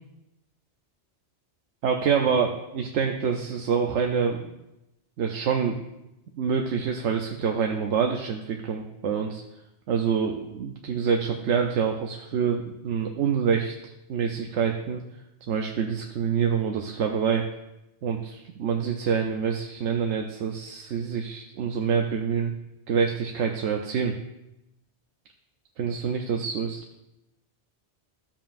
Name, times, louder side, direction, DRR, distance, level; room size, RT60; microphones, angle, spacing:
voice 1, 1.8-4.4 5.2-5.8 6.4-9.4 9.9-15.0 15.5-17.5 18.0-22.5 22.9-24.2 25.8-26.8, right 6 dB, 85° right, 3 dB, 1.0 m, -26 dB
13.5 x 7.3 x 2.5 m, 0.92 s
omnidirectional pair, 1.2 m